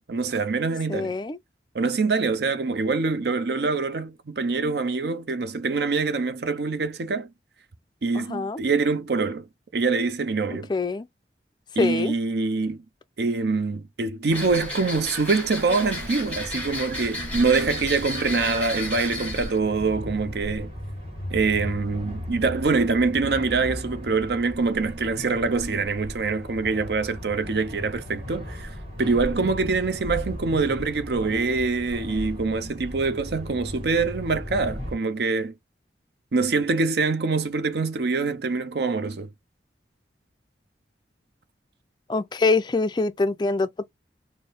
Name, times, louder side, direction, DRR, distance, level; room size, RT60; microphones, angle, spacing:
voice 1, 0.0-1.1 1.7-7.3 8.0-9.4 9.7-10.7 11.8-12.8 13.2-20.7 21.3-28.7 29.0-35.5 36.3-39.3, right 4 dB, 60° right, 0.5 m, -25 dB
voice 2, 0.9-1.4 8.1-8.6 10.5-11.1 11.8-12.1 42.1-43.9, left 3 dB, 25° left, 0.3 m, -25 dB
sound 1, 14.3-19.6, left 1 dB, 10° left, 1.3 m, -33 dB
sound 2, 16.2-34.9, equal, 35° right, 1.8 m, -37 dB
4.3 x 2.0 x 3.3 m
head